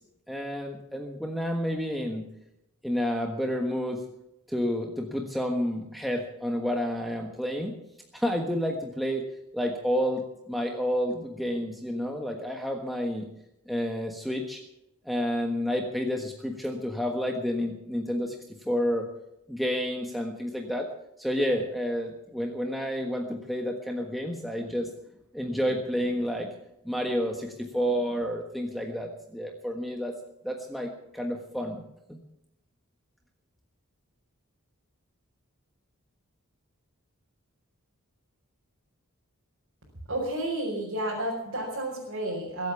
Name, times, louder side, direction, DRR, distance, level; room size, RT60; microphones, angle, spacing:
voice 1, 0.3-2.2 2.8-4.0 4.5-7.7 8.1-13.3 13.7-14.6 15.0-19.1 19.5-20.9 21.2-24.9 25.3-26.5 26.8-30.1 30.4-31.8 32.1-32.2, equal, ahead, 2 dB, 1.4 m, -30 dB
voice 2, 40.1-42.7, right 1 dB, 60° right, -3 dB, 4.7 m, -31 dB
22.5 x 8.5 x 7.1 m, 0.85 s
head